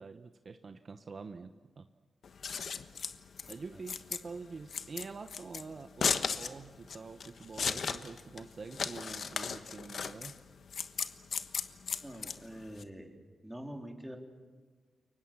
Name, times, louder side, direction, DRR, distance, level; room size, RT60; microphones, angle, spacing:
voice 1, 0.0-1.9 3.5-10.4, right 4 dB, 45° right, 8 dB, 0.9 m, -46 dB
Scissors, 2.2-12.8, left 6 dB, 60° left, 1.2 m, -36 dB
voice 2, 12.0-13.2 13.4-14.2, equal, 5° right, 2 dB, 3.4 m, -45 dB
29.0 x 23.5 x 7.4 m, 1.5 s
wide cardioid pair, 115°, 0 cm